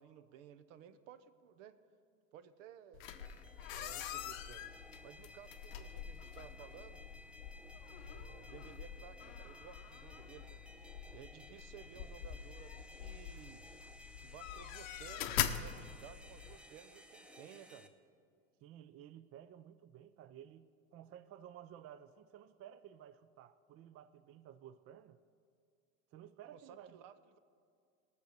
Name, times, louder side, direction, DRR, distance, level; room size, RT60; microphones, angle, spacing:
voice 1, 0.0-1.8 2.3-3.1 3.7-4.7 5.0-7.0 8.0-10.6 11.1-13.7 14.2-17.9 26.5-27.4, right 9 dB, 75° right, 13 dB, 0.8 m, -56 dB
sound 1, 2.9-16.6, left 10 dB, 85° left, 0.8 m, -44 dB
sound 2, 3.1-17.9, left 1 dB, 5° right, 0.7 m, -57 dB
voice 2, 18.6-25.2 26.1-27.0, right 10 dB, 40° right, 13 dB, 0.5 m, -55 dB
18.0 x 6.7 x 6.6 m, 2.3 s
supercardioid pair, 105°, 38 cm